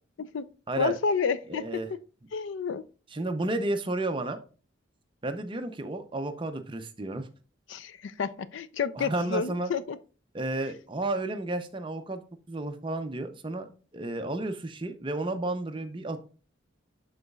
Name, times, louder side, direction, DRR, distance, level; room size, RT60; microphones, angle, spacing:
voice 1, 0.8-1.6 2.3-2.8 7.7-10.0, left 5 dB, 65° left, 0.4 m, -30 dB
voice 2, 1.5-1.9 3.1-4.4 5.2-7.3 8.9-9.7 10.3-12.2 12.5-13.7 13.9-16.2, right 2 dB, 25° right, 0.6 m, -32 dB
11.5 x 4.0 x 2.3 m
head